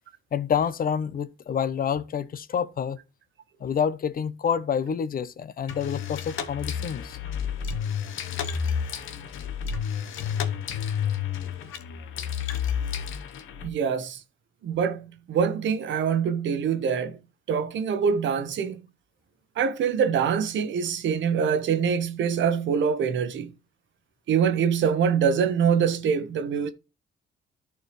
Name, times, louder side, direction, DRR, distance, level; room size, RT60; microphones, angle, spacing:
voice 1, 0.3-3.0 3.6-7.2, left 7 dB, 45° left, 0.8 m, -28 dB
sound 1, 5.7-13.7, left 8 dB, 80° left, 1.0 m, -30 dB
voice 2, 13.6-14.2 14.6-17.2 17.5-18.8 19.6-23.5 24.3-26.7, right 7 dB, 70° right, 1.0 m, -24 dB
13.5 x 4.6 x 3.1 m
cardioid pair, 90°, 20 cm